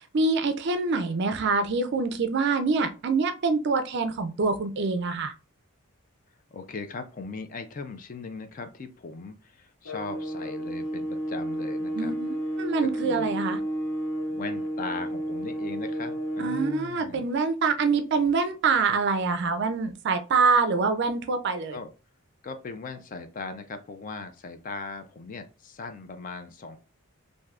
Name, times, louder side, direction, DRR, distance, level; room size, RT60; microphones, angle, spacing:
voice 1, 0.0-5.3 11.9-13.6 16.4-21.8, right 4 dB, 50° right, 8 dB, 0.4 m, -25 dB
voice 2, 6.5-12.1 12.8-13.3 14.3-17.3 21.7-21.9 22.4-26.8, left 4 dB, 35° left, 8 dB, 0.3 m, -39 dB
sound 1, 9.8-16.9, right 1 dB, 60° left, 0.8 m, -31 dB
3.3 x 2.6 x 2.4 m, 0.33 s
head